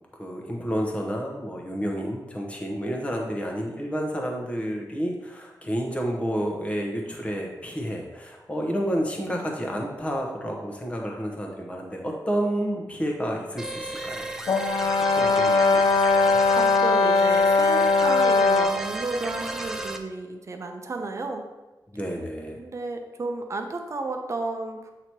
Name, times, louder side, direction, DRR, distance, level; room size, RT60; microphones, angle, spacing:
voice 1, 0.1-14.7 15.1-15.9 16.2-16.5 21.9-22.6, equal, 15° left, 0 dB, 0.9 m, -30 dB
sound 1, 13.6-20.0, right 2 dB, 5° right, 0.4 m, -33 dB
Brass instrument, 14.5-18.8, left 3 dB, 60° left, 0.4 m, -20 dB
voice 2, 15.2-15.9 16.5-21.4 22.6-24.9, right 3 dB, 45° right, 4 dB, 0.7 m, -33 dB
8.0 x 2.9 x 4.5 m, 1.1 s
wide cardioid pair, 150°, 7 cm